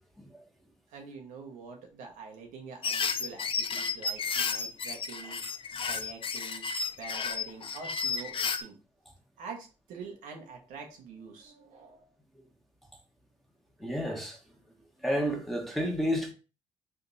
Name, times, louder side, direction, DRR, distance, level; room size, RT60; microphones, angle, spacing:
voice 1, 0.9-5.4 5.8-6.6 7.0-8.8 9.4-12.0, right 5 dB, 85° right, 1.0 m, -45 dB
sound 1, 2.8-8.6, left 5 dB, 40° left, 0.5 m, -32 dB
voice 2, 13.8-14.4 15.0-16.3, equal, ahead, 1.2 m, -30 dB
3.4 x 2.8 x 4.0 m
cardioid pair, 75°, 13 cm